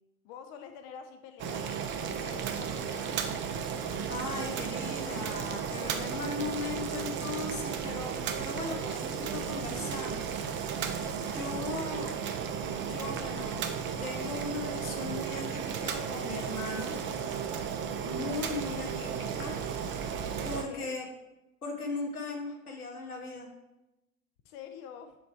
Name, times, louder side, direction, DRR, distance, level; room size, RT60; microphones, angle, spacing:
voice 1, 0.2-3.5 11.5-11.9 20.5-20.9 24.4-25.2, left 7 dB, 45° left, 7 dB, 0.6 m, -48 dB
Boiling, 1.4-20.6, right 7 dB, 25° right, 0.5 m, -34 dB
voice 2, 4.1-10.4 10.9-12.1 12.6-13.6 14.0-17.0 18.0-19.6 20.4-21.1 21.6-23.5, left 3 dB, 80° left, 1 dB, 1.2 m, -38 dB
7.1 x 3.4 x 4.4 m, 0.95 s
figure-of-eight pair, 75°, 43 cm